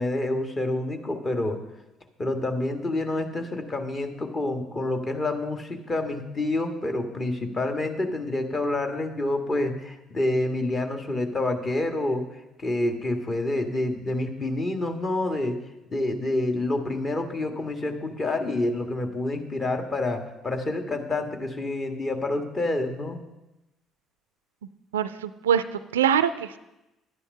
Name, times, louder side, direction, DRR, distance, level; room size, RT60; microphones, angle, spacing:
voice 1, 0.0-1.6 2.2-15.6 15.9-23.2, left 2 dB, 35° left, 5 dB, 1.8 m, -28 dB
voice 2, 24.9-26.6, right 9 dB, 80° right, 14 dB, 0.3 m, -24 dB
11.0 x 9.7 x 5.5 m, 0.95 s
figure-of-eight pair, 50°, 0 cm